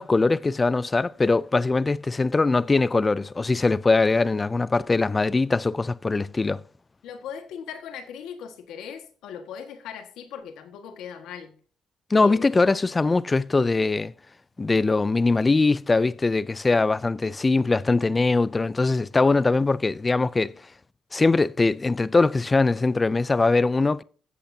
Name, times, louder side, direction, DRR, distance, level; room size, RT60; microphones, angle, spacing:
voice 1, 0.0-6.6 12.1-14.1 14.6-20.5 21.1-24.0, left 3 dB, 25° left, 0.4 m, -22 dB
voice 2, 7.0-11.5 12.1-12.6, left 7 dB, 85° left, 1.7 m, -39 dB
15.0 x 8.2 x 2.8 m
cardioid pair, 90°, 0 cm